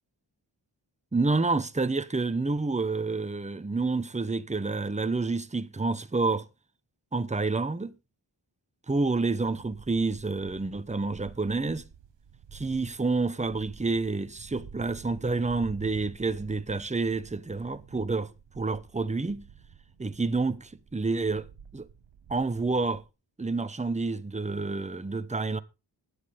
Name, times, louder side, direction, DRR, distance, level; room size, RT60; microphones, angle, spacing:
voice 1, 1.1-6.5 7.1-7.9 8.9-11.8 12.5-19.5 20.0-21.5 21.7-21.9 22.3-23.0 23.4-25.6, right 3 dB, 15° right, 0.9 m, -29 dB
sound 1, 9.4-23.1, right 7 dB, 85° right, 0.9 m, -50 dB
16.0 x 10.0 x 3.5 m
wide cardioid pair, 75°, 43 cm